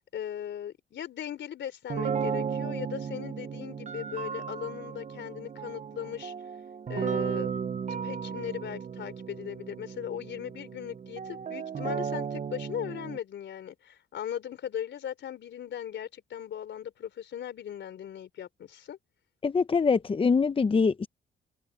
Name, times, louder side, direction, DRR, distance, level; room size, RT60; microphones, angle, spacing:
voice 1, 0.1-6.3 6.9-7.5 7.9-19.0, left 9 dB, 65° left, 3.7 m, -38 dB
sound 1, 1.9-13.2, right 6 dB, 40° right, 0.8 m, -35 dB
voice 2, 19.4-21.1, left 5 dB, 25° left, 0.7 m, -24 dB
open air
cardioid pair, 90°, 20 cm